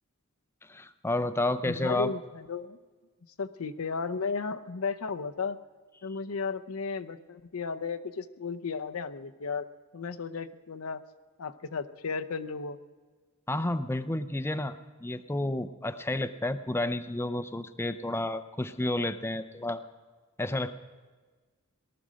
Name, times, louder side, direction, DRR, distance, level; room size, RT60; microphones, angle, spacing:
voice 1, 0.7-2.1 13.5-19.8 20.4-20.8, left 1 dB, 10° left, 10 dB, 0.5 m, -31 dB
voice 2, 1.6-2.8 3.4-5.6 6.0-9.7 9.9-11.0 11.4-12.8, left 5 dB, 85° left, 9 dB, 0.7 m, -34 dB
18.5 x 12.0 x 6.3 m, 1.4 s
head